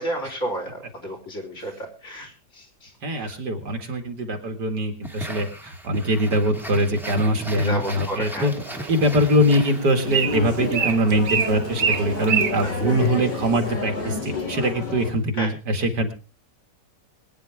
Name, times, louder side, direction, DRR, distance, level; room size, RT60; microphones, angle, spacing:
voice 1, 0.0-3.3 7.5-8.5 12.6-12.8 15.4-15.5, right 1 dB, 45° left, 3 dB, 4.3 m, -32 dB
voice 2, 3.0-8.5 8.9-16.1, equal, 70° right, 5 dB, 2.6 m, -23 dB
sound 1, 5.0-10.2, right 1 dB, ahead, 1.8 m, -35 dB
Bird, 8.6-13.7, right 7 dB, 50° right, 0.7 m, -28 dB
sound 2, 10.0-15.1, left 2 dB, 85° left, 4.5 m, -30 dB
22.5 x 9.8 x 3.5 m, 0.37 s
omnidirectional pair, 1.9 m